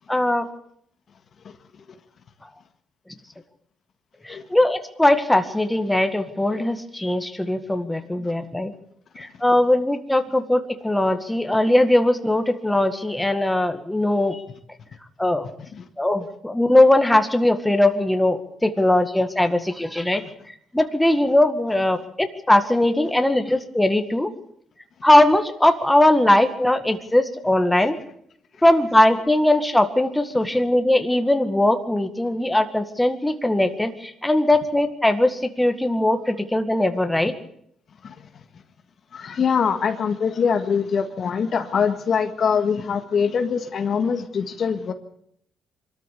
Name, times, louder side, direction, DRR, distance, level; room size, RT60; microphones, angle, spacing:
voice 1, 0.1-0.5 4.2-8.7 9.2-14.4 15.2-15.5 16.0-20.2 20.7-24.3 25.0-28.0 28.6-37.3, left 1 dB, 10° left, 7 dB, 1.9 m, -20 dB
voice 2, 39.1-44.9, left 6 dB, 55° left, 7 dB, 1.8 m, -23 dB
23.5 x 13.5 x 8.5 m, 0.69 s
cardioid pair, 90°, 0 cm